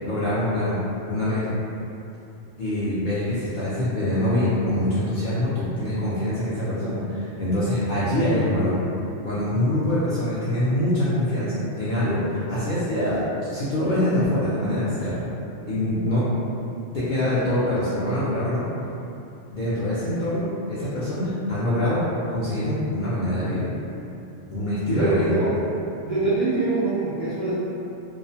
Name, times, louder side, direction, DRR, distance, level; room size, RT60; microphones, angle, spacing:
voice 1, 0.0-0.8 1.1-1.6 2.6-8.8 9.2-15.3 15.7-16.2 16.9-18.6 19.5-22.0 22.3-23.7 24.5-25.3, left 1 dB, 60° left, -11 dB, 0.5 m, -24 dB
voice 2, 25.0-25.5 26.0-27.5, right 2 dB, 60° right, -10 dB, 0.4 m, -24 dB
2.4 x 2.0 x 2.7 m, 2.7 s
omnidirectional pair, 1.2 m